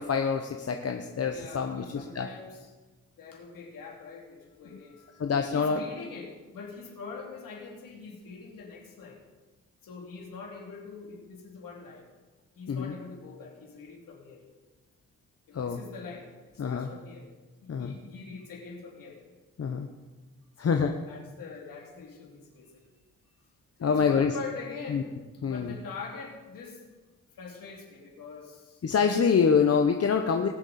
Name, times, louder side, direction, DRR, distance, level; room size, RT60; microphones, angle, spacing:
voice 1, 0.0-2.3 5.2-5.8 12.7-12.9 15.5-15.8 16.6-16.9 17.7-17.9 19.6-19.9 20.6-20.9 23.8-24.3 24.9-25.0 25.4-25.7 28.8-30.5, left 6 dB, 50° left, 4 dB, 0.9 m, -26 dB
voice 2, 1.3-2.7 3.2-9.2 9.8-12.1 12.5-14.4 15.5-17.3 17.6-19.2 20.6-22.8 23.8-25.1 25.4-26.8 27.3-28.8, left 4 dB, 80° left, -1 dB, 3.0 m, -44 dB
20.0 x 7.3 x 4.2 m, 1.2 s
cardioid pair, 70°, 33 cm